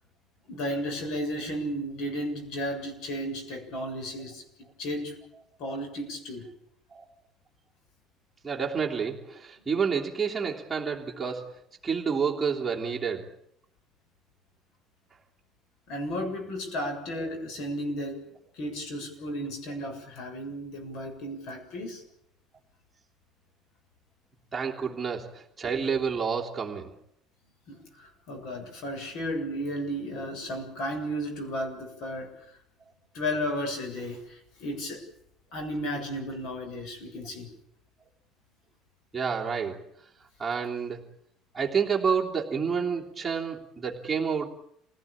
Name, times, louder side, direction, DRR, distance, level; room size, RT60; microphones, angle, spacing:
voice 1, 0.5-4.4 4.8-5.1 5.6-6.5 15.9-22.0 24.8-24.9 27.7-32.5 33.1-35.0 35.5-37.5, equal, 60° left, 6 dB, 7.3 m, -34 dB
voice 2, 8.4-13.3 24.5-26.9 39.1-39.8 40.4-41.0 41.5-44.5, right 6 dB, 15° right, -2 dB, 3.2 m, -29 dB
27.0 x 18.0 x 8.7 m, 0.73 s
cardioid pair, 145°, 0 cm